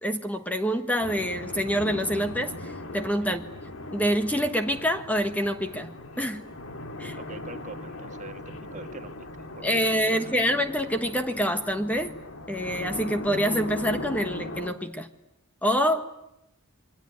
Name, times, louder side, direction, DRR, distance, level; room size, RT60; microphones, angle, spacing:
voice 1, 0.0-3.5 3.9-6.5 7.0-7.2 9.6-12.2 12.5-15.1 15.6-16.2, equal, 5° left, 8 dB, 1.2 m, -26 dB
sound 1, 1.0-14.7, left 2 dB, 65° left, 2.2 m, -39 dB
voice 2, 7.2-10.5, right 3 dB, 35° right, 7 dB, 1.6 m, -45 dB
27.0 x 23.0 x 9.5 m, 0.84 s
head